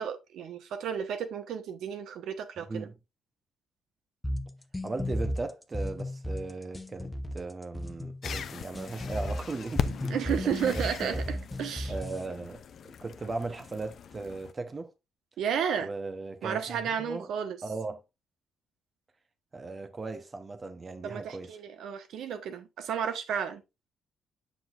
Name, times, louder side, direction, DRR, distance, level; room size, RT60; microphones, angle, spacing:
voice 1, 0.0-2.9 10.1-11.9 15.4-15.9 16.4-17.6 21.0-23.6, right 8 dB, 75° right, 1.2 m, -32 dB
voice 2, 2.6-2.9 4.8-10.4 10.6-11.2 11.9-14.9 15.8-17.3 17.6-18.0 19.5-21.5, right 3 dB, 30° right, 0.9 m, -38 dB
sound 1, 4.2-12.2, left 1 dB, 15° left, 0.9 m, -34 dB
sound 2, 8.2-14.5, left 7 dB, 60° left, 0.6 m, -39 dB
7.7 x 6.1 x 2.5 m
cardioid pair, 90°, 0 cm